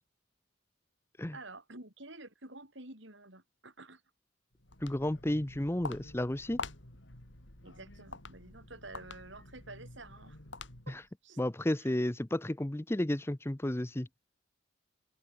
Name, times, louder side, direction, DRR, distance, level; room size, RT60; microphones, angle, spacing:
voice 1, 1.3-4.0 7.6-10.4 10.9-11.4 11.8-11.9, right 2 dB, 60° right, 6.3 m, -50 dB
Walk footsteps, 4.5-11.1, left 3 dB, 60° left, 3.6 m, -47 dB
voice 2, 4.8-6.6 10.9-11.0 11.4-14.1, left 1 dB, 10° left, 0.6 m, -32 dB
head